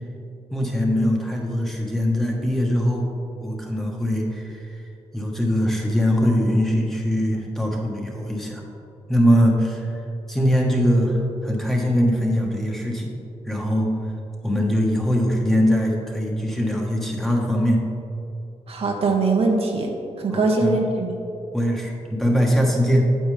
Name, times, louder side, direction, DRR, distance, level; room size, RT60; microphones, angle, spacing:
voice 1, 0.5-3.0 3.4-4.6 5.1-8.6 9.1-10.0 10.3-13.1 13.4-13.9 14.4-17.8 20.3-20.8 21.5-23.1, equal, 5° left, -1 dB, 1.3 m, -21 dB
voice 2, 18.7-19.9 20.2-21.1, right 3 dB, 60° right, 1 dB, 1.0 m, -21 dB
8.9 x 7.9 x 3.3 m, 2.7 s
cardioid pair, 100°, 12 cm